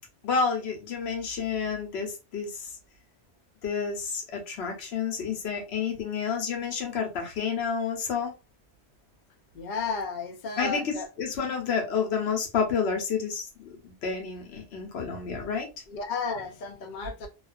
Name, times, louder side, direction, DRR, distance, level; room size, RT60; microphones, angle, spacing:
voice 1, 0.2-2.7 3.6-8.3 10.6-13.5 13.8-15.7, left 6 dB, 90° left, 1.0 m, -30 dB
voice 2, 9.5-11.1 15.9-17.3, left 4 dB, 55° left, 0.6 m, -33 dB
2.4 x 2.3 x 2.3 m
omnidirectional pair, 1.1 m